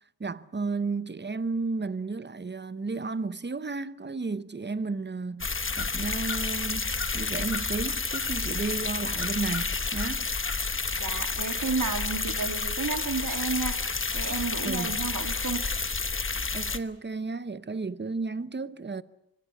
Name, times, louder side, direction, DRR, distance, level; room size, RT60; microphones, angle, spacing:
voice 1, 0.2-10.3 14.6-15.0 16.5-19.0, right 3 dB, 30° right, 0.9 m, -33 dB
sound 1, 5.4-16.8, left 4 dB, 35° left, 1.2 m, -30 dB
voice 2, 11.0-15.7, right 4 dB, 55° right, 2.7 m, -32 dB
25.0 x 22.5 x 8.4 m
wide cardioid pair, 85°, 37 cm